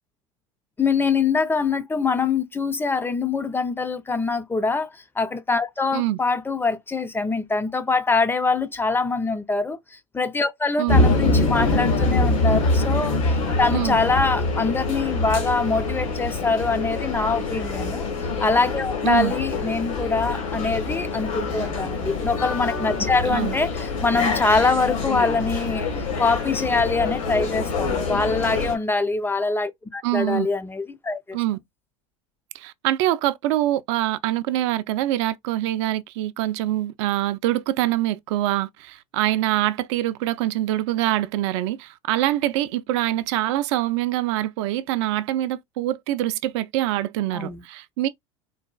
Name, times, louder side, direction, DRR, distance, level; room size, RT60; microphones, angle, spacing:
voice 1, 0.8-13.2 13.6-18.1 18.4-25.9 26.2-31.4 47.3-47.6, left 4 dB, 10° left, 0.5 m, -24 dB
sound 1, 10.9-28.7, left 3 dB, 70° left, 1.4 m, -25 dB
voice 2, 30.0-30.5 31.3-31.6 32.5-48.1, right 14 dB, 60° right, 0.4 m, -24 dB
4.0 x 2.3 x 2.3 m
hypercardioid pair, 80°, 17 cm